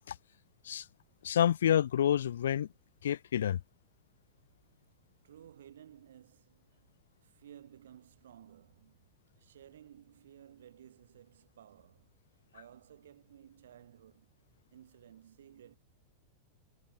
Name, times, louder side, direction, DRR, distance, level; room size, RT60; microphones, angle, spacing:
voice 1, 1.2-2.7 3.0-3.6, left 10 dB, 65° left, 1.0 m, -28 dB
voice 2, 5.2-6.9 7.2-12.1 12.5-14.3 14.7-15.8, right 10 dB, 60° right, 5.5 m, -56 dB
figure-of-eight pair, 90°, 0 cm